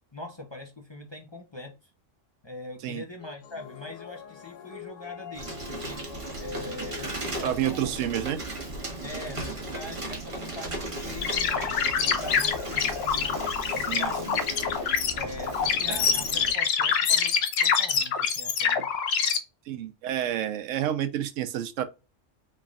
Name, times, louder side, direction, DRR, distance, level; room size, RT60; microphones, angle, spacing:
voice 1, 0.1-1.9 2.4-6.0 6.4-8.0 9.0-13.4 13.7-14.8 15.1-17.3 17.6-18.9, left 2 dB, 30° left, 0.6 m, -42 dB
sound 1, 3.2-8.3 10.8-14.8, left 10 dB, 80° left, 1.0 m, -45 dB
Bicycle, 5.4-16.5, right 2 dB, 25° right, 1.1 m, -36 dB
voice 2, 7.4-8.4 13.9-14.1 15.9-16.0 19.7-21.8, right 11 dB, 85° right, 0.9 m, -29 dB
sound 2, 11.2-19.4, left 7 dB, 60° left, 0.8 m, -25 dB
3.9 x 3.4 x 2.3 m
omnidirectional pair, 1.3 m